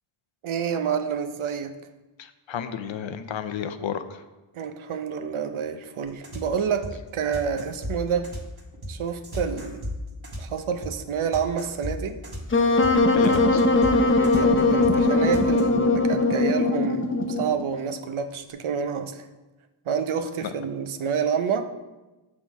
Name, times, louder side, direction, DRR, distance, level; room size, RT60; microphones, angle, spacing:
voice 1, 0.4-1.7 4.5-8.3 8.9-9.8 10.4-12.2 14.3-19.2 19.9-21.7, right 7 dB, 75° right, 8 dB, 0.7 m, -28 dB
voice 2, 2.2-4.2 13.1-13.6 20.4-20.5, left 8 dB, 65° left, 10 dB, 0.6 m, -32 dB
sound 1, 6.0-15.6, equal, 50° right, 1.6 m, -34 dB
Wind instrument woodwind instrument, 12.5-17.6, left 2 dB, 25° left, 0.6 m, -20 dB
6.1 x 3.8 x 5.9 m, 1.1 s
cardioid pair, 50°, 49 cm